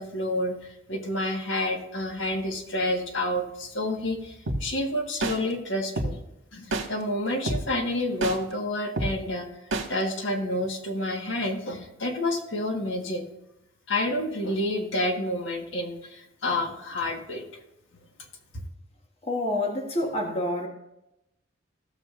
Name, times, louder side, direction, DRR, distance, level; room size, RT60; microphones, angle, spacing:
voice 1, 0.0-6.2 6.5-9.5 9.9-13.2 13.9-17.4, left 1 dB, 75° left, 2 dB, 1.5 m, -29 dB
sound 1, 4.5-4.6 5.2-5.4 6.0-6.1 6.7-6.9 7.5-7.6 8.2-8.4 9.0-9.1 9.7-9.9, right 2 dB, 85° right, 1.7 m, -26 dB
voice 2, 19.2-20.7, left 1 dB, 30° left, 1 dB, 1.3 m, -28 dB
16.0 x 7.3 x 2.5 m, 0.87 s
head